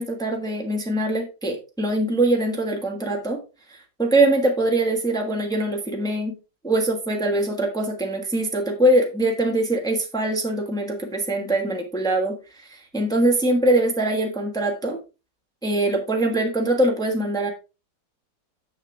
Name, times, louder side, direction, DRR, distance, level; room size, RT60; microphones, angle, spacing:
voice 1, 0.0-3.4 3.7-6.4 6.6-15.0 15.6-17.5, right 1 dB, ahead, 0 dB, 1.3 m, -23 dB
7.1 x 7.1 x 3.3 m, 0.30 s
omnidirectional pair, 1.9 m